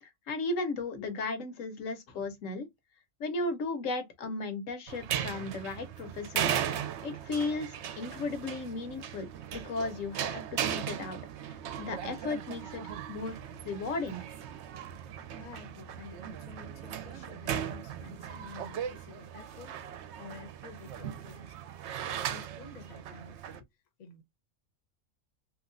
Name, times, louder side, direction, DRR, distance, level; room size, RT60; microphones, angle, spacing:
voice 1, 0.0-2.7 3.2-9.3 9.5-11.2 11.4-13.4 13.6-14.2, left 3 dB, 80° left, 1.2 m, -35 dB
sound 1, 4.9-23.6, right 9 dB, 70° right, 0.8 m, -38 dB
voice 2, 15.4-21.7 22.3-23.7 24.0-24.2, left 5 dB, 40° left, 0.7 m, -51 dB
3.0 x 2.8 x 2.5 m
omnidirectional pair, 1.3 m